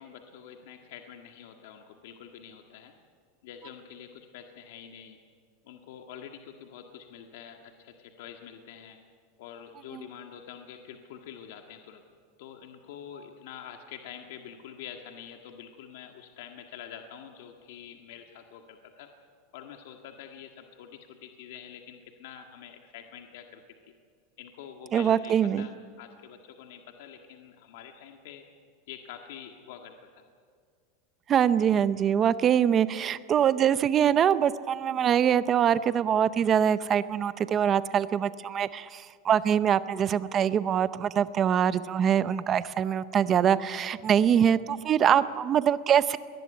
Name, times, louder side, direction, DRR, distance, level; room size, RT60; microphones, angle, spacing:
voice 1, 0.0-2.9 3.4-5.2 5.6-9.0 9.4-12.0 12.4-19.1 19.5-23.6 24.4-28.5 28.9-30.2 34.8-34.9 45.1-45.3, left 9 dB, 60° left, 4 dB, 1.7 m, -46 dB
voice 2, 24.9-25.7 31.3-46.2, right 9 dB, 20° right, 14 dB, 0.6 m, -24 dB
22.0 x 19.5 x 9.6 m, 2.1 s
supercardioid pair, 180°, 0 cm